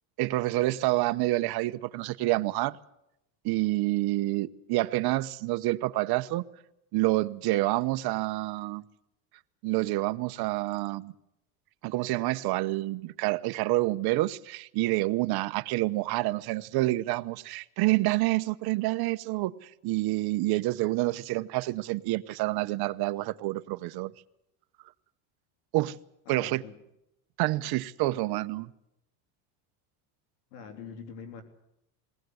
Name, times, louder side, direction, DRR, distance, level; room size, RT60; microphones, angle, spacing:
voice 1, 0.2-2.8 3.4-6.5 6.9-8.8 9.6-11.1 11.8-24.1 25.7-26.0 26.3-26.6 27.4-28.7, right 19 dB, 55° right, 1.0 m, -28 dB
voice 2, 26.3-26.7 30.5-31.4, left 6 dB, 85° left, 3.5 m, -44 dB
21.0 x 19.0 x 7.9 m
supercardioid pair, 125°, 46 cm